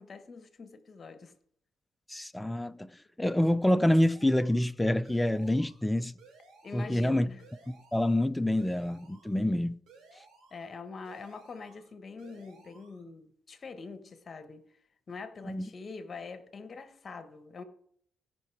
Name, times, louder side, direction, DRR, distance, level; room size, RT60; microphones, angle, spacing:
voice 1, 0.0-1.3 6.6-7.4 10.5-14.7 15.1-17.6, left 4 dB, 40° left, 1.1 m, -44 dB
voice 2, 2.1-2.9 3.2-6.1 6.7-7.3 7.9-9.8 15.4-15.7, left 1 dB, 10° left, 0.4 m, -27 dB
sound 1, 3.9-4.7 5.0-5.9 6.2-7.0 7.4-8.2 8.6-9.4 9.9-10.7 11.0-11.9 12.2-13.0, right 4 dB, 85° right, 3.3 m, -58 dB
16.5 x 5.8 x 4.6 m
cardioid pair, 90°, 0 cm